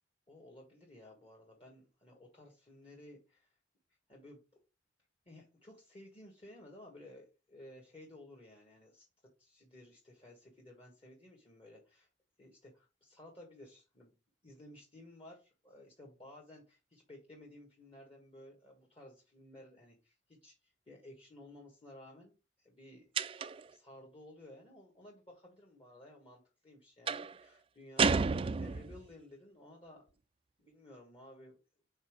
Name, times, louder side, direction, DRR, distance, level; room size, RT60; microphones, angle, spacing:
voice 1, 0.3-3.6 4.1-4.4 5.2-12.1 12.4-14.1 14.4-22.3 22.6-23.1 23.7-30.2 30.6-31.6, left 1 dB, 30° left, -2 dB, 1.5 m, -56 dB
sound 1, 23.2-23.7 27.1-27.4 28.0-29.1, right 5 dB, 30° right, 0.3 m, -31 dB
5.4 x 4.0 x 4.9 m, 0.30 s
head